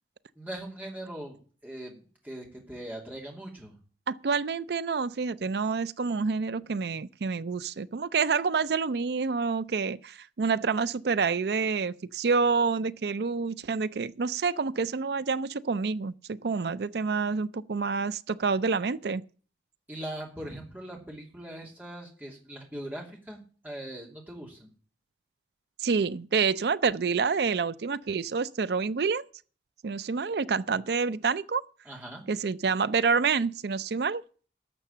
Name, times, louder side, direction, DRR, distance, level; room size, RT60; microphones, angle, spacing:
voice 1, 0.4-1.4 1.6-3.7 19.9-23.4 23.6-24.7 31.8-32.3, right 1 dB, 10° right, 2.8 m, -40 dB
voice 2, 4.1-19.2 25.8-29.2 29.8-31.6 32.3-34.2, right 5 dB, 65° right, 0.4 m, -28 dB
12.0 x 6.7 x 7.2 m
head